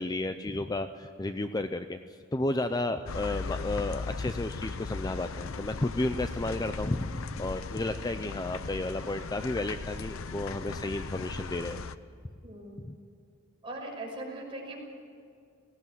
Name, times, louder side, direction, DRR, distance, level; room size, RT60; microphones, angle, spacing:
voice 1, 0.0-2.0 2.3-11.8 12.8-13.0, left 2 dB, 20° left, 9 dB, 0.5 m, -32 dB
sound 1, 3.1-12.0, left 4 dB, 85° left, 0.7 m, -38 dB
voice 2, 12.4-12.8 13.6-14.8, right 1 dB, 25° right, -2 dB, 6.0 m, -40 dB
18.5 x 16.5 x 9.3 m, 2.3 s
head